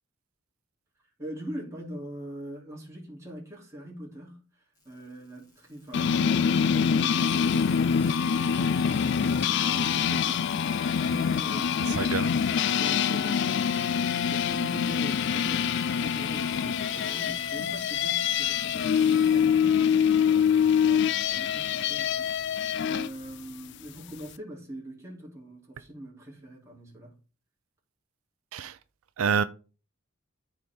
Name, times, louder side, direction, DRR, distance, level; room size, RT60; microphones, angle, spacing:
voice 1, 1.2-4.4 4.8-12.3 12.8-27.1, equal, 15° right, 3.0 m, -42 dB
sound 1, 4.7-22.7 23.2-23.5, left 2 dB, 15° left, 2.8 m, -49 dB
sound 2, 5.9-23.1, left 7 dB, 55° left, 0.3 m, -25 dB
voice 2, 11.8-12.3 28.5-28.8 29.2-29.4, right 6 dB, 80° right, 0.5 m, -27 dB
13.0 x 4.6 x 3.6 m
head